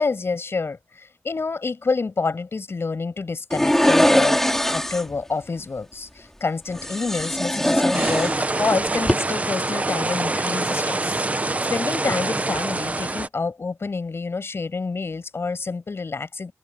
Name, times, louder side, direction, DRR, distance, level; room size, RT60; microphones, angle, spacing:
voice 1, 0.0-16.5, left 4 dB, 50° left, 6.2 m, -28 dB
sound 1, 3.5-5.2 6.7-8.7 9.0-9.1, equal, 5° left, 3.0 m, -21 dB
sound 2, 7.9-13.3, right 2 dB, 30° right, 0.9 m, -25 dB
open air
wide cardioid pair, 80°, 5 cm